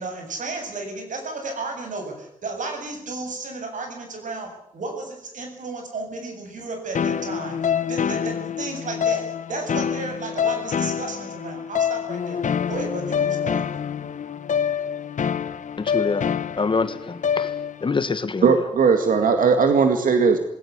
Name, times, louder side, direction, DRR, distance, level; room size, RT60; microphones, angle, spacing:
voice 1, 0.0-13.6, right 3 dB, 70° right, 4 dB, 7.7 m, -33 dB
sound 1, 6.9-17.9, left 7 dB, 65° left, 1.2 m, -26 dB
voice 2, 15.8-16.3 16.6-17.5 17.8-18.5, left 4 dB, 40° left, 12 dB, 1.5 m, -25 dB
voice 3, 18.4-20.4, right 5 dB, 85° right, 7 dB, 2.1 m, -18 dB
20.0 x 17.5 x 9.8 m, 0.77 s
wide cardioid pair, 135°, 14 cm